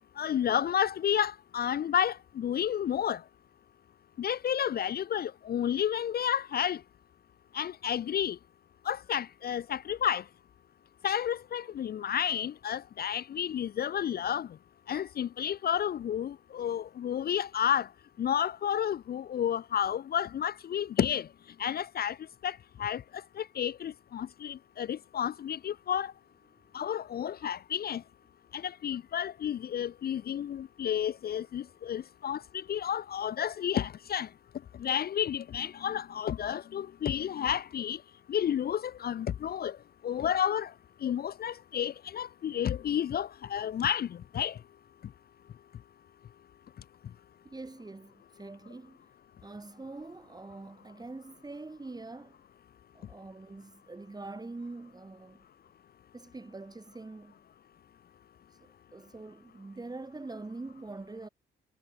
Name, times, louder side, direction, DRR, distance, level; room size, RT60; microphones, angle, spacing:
voice 1, 0.2-3.2 4.2-6.8 7.5-8.4 8.9-10.2 11.0-14.5 14.9-17.9 18.2-21.3 21.6-22.2 22.4-23.0 23.4-26.1 26.7-28.0 28.5-34.3 34.8-38.0 38.3-39.8 40.0-40.7 41.0-44.6, left 9 dB, 50° left, 0.7 m, -31 dB
voice 2, 47.4-49.0 49.4-52.4 52.9-55.4 56.1-57.4 58.6-61.3, right 3 dB, 20° right, 5.0 m, -44 dB
cardioid pair, 90°, 20 cm